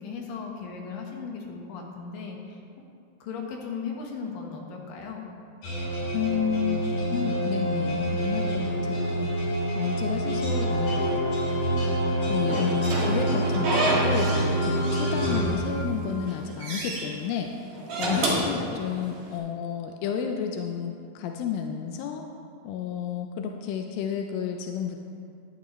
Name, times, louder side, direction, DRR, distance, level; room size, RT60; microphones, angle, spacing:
voice 1, 0.0-2.6 3.2-5.3, left 5 dB, 65° left, 0 dB, 2.8 m, -37 dB
sound 1, 5.6-16.3, right 1 dB, 45° left, 4.3 m, -27 dB
voice 2, 6.1-6.8 7.1-9.3 9.8-11.0 12.3-22.3 22.6-25.0, left 8 dB, 80° left, 3 dB, 2.1 m, -31 dB
Slam / Squeak, 12.5-14.5 14.8-15.8 16.2-17.1 17.7-19.3, right 1 dB, 45° right, 2.3 m, -29 dB
13.0 x 11.0 x 3.1 m, 2.4 s
omnidirectional pair, 4.6 m